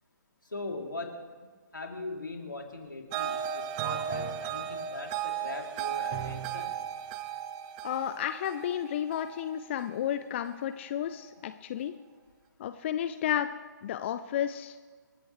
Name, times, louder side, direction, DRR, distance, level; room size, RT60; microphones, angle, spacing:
voice 1, 0.4-1.4 1.7-6.8, left 2 dB, 85° left, 1 dB, 3.1 m, -40 dB
sound 1, 3.1-10.2, right 9 dB, 25° right, 0.6 m, -36 dB
voice 2, 7.8-11.9 12.6-13.5 13.8-14.8, left 10 dB, 35° left, 11 dB, 0.5 m, -32 dB
27.5 x 10.0 x 3.2 m, 1.5 s
figure-of-eight pair, 135°, 10 cm